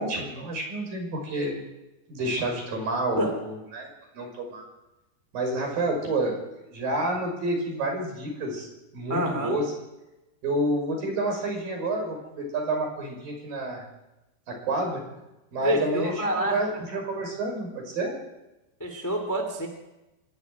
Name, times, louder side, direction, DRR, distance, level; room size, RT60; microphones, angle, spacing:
voice 1, 0.0-1.6 2.1-3.9 4.1-4.6 5.3-8.7 8.9-9.7 10.4-13.9 14.5-15.0 15.5-18.2, right 2 dB, 50° right, 2 dB, 7.2 m, -29 dB
voice 2, 9.1-9.5 15.6-16.6 18.8-19.7, right 1 dB, 10° left, 4 dB, 1.2 m, -27 dB
25.5 x 11.0 x 9.8 m, 0.97 s
omnidirectional pair, 5.2 m